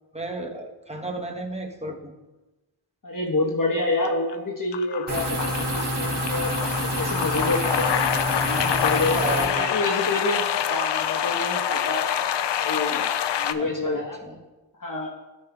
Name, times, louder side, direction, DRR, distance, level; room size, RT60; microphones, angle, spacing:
voice 1, 0.1-2.1 9.1-9.7 13.5-14.4, right 2 dB, 15° right, 2 dB, 1.0 m, -33 dB
voice 2, 3.0-7.9 8.4-12.0 12.6-13.1 13.4-14.2 14.8-15.1, left 2 dB, 45° left, -2 dB, 1.2 m, -28 dB
sound 1, 4.0-4.3 4.7-13.5, left 9 dB, 65° left, 0.5 m, -26 dB
sound 2, 5.1-9.5, right 1 dB, 55° right, 2.0 m, -28 dB
11.0 x 5.5 x 2.3 m, 1.1 s
cardioid pair, 45°, 46 cm